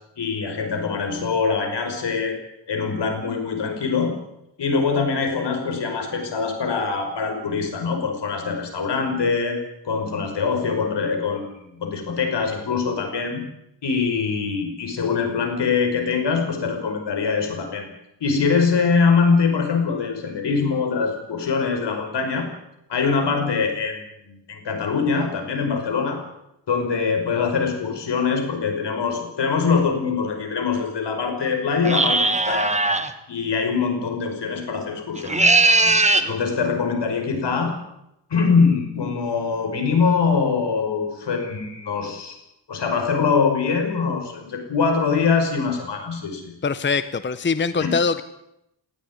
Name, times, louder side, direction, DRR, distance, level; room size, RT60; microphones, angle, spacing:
voice 1, 0.2-2.4 2.7-4.1 4.6-9.6 9.9-13.4 13.8-17.9 18.2-22.5 22.9-26.2 26.7-33.0 33.3-36.0 36.2-37.7 38.3-42.4 42.7-46.5 47.8-47.9, left 5 dB, 70° left, 4 dB, 5.5 m, -23 dB
sound 1, 31.8-33.1 35.2-36.3, right 2 dB, 15° right, 1.5 m, -18 dB
voice 2, 46.6-48.2, left 5 dB, 25° left, 13 dB, 0.9 m, -22 dB
19.0 x 17.0 x 9.6 m, 0.83 s
wide cardioid pair, 125°, 43 cm